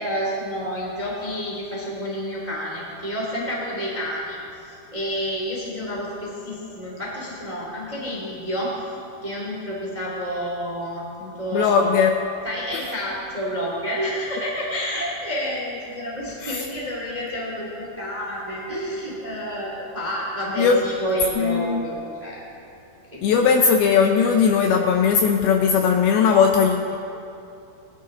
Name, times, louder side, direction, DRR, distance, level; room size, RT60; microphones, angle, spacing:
voice 1, 0.0-8.8 9.2-11.9 12.4-22.4 23.1-23.4, equal, 15° right, -4 dB, 1.5 m, -29 dB
voice 2, 11.5-12.1 12.7-12.8 16.4-16.6 20.6-20.8 21.4-21.8 23.2-27.0, left 6 dB, 80° left, 3 dB, 2.3 m, -18 dB
20.0 x 11.5 x 3.8 m, 2.7 s
omnidirectional pair, 4.9 m